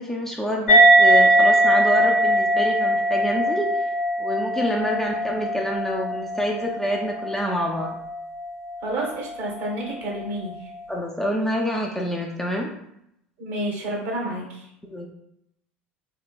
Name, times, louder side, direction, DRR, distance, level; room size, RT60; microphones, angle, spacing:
voice 1, 0.0-3.7 4.2-7.9 10.9-12.7 14.8-15.1, equal, 5° left, -1 dB, 0.4 m, -27 dB
sound 1, 0.7-7.6, right 1 dB, 80° left, 0.4 m, -19 dB
voice 2, 8.8-10.7 13.4-14.7, right 1 dB, 50° right, -1 dB, 1.0 m, -30 dB
3.0 x 2.8 x 2.3 m, 0.78 s
figure-of-eight pair, 70°, 7 cm